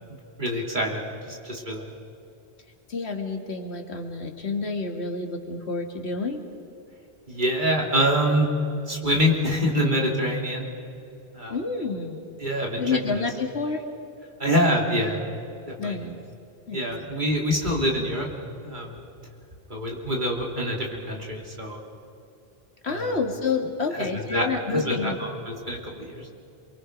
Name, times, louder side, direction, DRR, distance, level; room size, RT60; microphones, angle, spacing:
voice 1, 0.4-1.9 7.3-8.5 8.9-10.7 11.3-11.6 12.4-13.2 14.4-15.2 15.7-16.0 16.7-18.3 18.6-19.0 19.7-21.8 22.9-23.2 24.0-26.3, equal, 50° right, -1 dB, 3.4 m, -26 dB
voice 2, 2.9-6.5 11.5-12.2 12.8-13.8 15.8-16.2 16.7-16.9 22.8-25.2, left 4 dB, 85° left, 4 dB, 2.2 m, -29 dB
28.5 x 23.0 x 5.3 m, 2.7 s
omnidirectional pair, 1.1 m